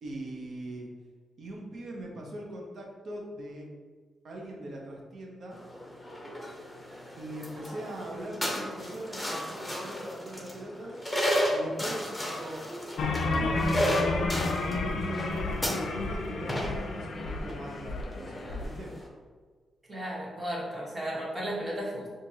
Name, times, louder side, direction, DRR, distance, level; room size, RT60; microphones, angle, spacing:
voice 1, 0.0-0.9 1.4-3.7 4.2-5.6 7.2-11.0 11.5-12.7 13.1-14.6 14.9-18.9, right 1 dB, 60° right, -1 dB, 0.7 m, -41 dB
sound 1, 5.5-19.1, equal, 10° left, 0.7 m, -34 dB
sound 2, 13.0-18.7, left 3 dB, 70° left, 0.4 m, -31 dB
voice 2, 19.9-22.1, equal, 25° right, -5 dB, 1.2 m, -34 dB
4.4 x 2.5 x 2.8 m, 1.5 s
cardioid pair, 105°, 0 cm